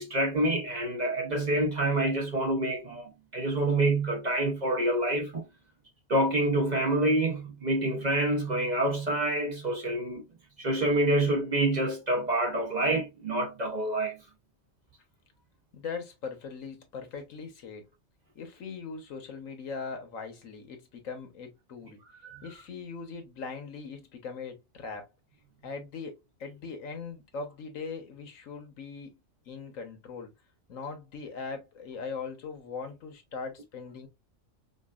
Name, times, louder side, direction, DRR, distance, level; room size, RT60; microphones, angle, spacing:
voice 1, 0.0-5.4 6.1-10.3 10.6-14.2 22.2-22.5, right 1 dB, 40° right, 0.8 m, -27 dB
voice 2, 15.7-17.9 18.3-22.0 22.4-25.1 25.6-29.2 29.5-30.3 30.7-34.1, left 5 dB, 90° left, 1.5 m, -40 dB
5.1 x 2.4 x 2.3 m
omnidirectional pair, 1.3 m